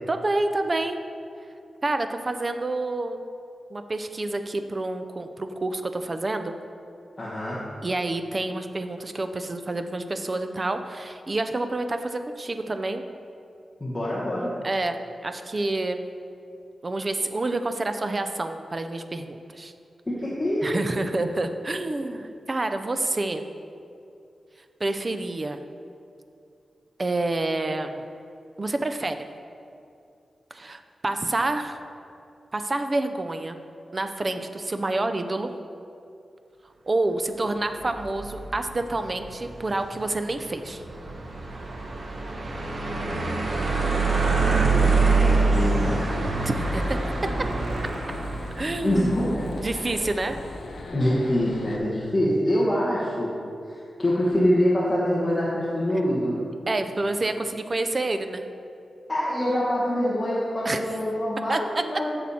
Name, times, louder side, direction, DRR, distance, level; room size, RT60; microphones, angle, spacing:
voice 1, 0.1-1.0 1.8-3.2 3.7-6.5 7.8-13.0 14.6-16.0 16.8-19.7 20.6-23.4 24.8-25.6 27.0-28.0 28.6-29.3 30.5-31.8 32.5-33.6 33.9-35.5 36.9-40.8 46.4-47.0 48.6-49.1 49.6-50.4 56.7-58.4 60.6-60.8 61.5-61.8, right 2 dB, 25° right, 8 dB, 0.4 m, -28 dB
voice 2, 7.2-7.6 13.8-14.5 20.1-20.8 44.6-46.1 48.8-49.4 49.7-49.9 50.9-53.3 53.7-56.4 59.1-62.1, equal, 20° left, -8 dB, 1.4 m, -25 dB
sound 1, 37.8-50.0, right 3 dB, 45° right, 0.9 m, -26 dB
sound 2, 43.9-51.8, left 2 dB, 70° left, 0.8 m, -38 dB
10.5 x 7.0 x 4.2 m, 2.6 s
wide cardioid pair, 175°, 0 cm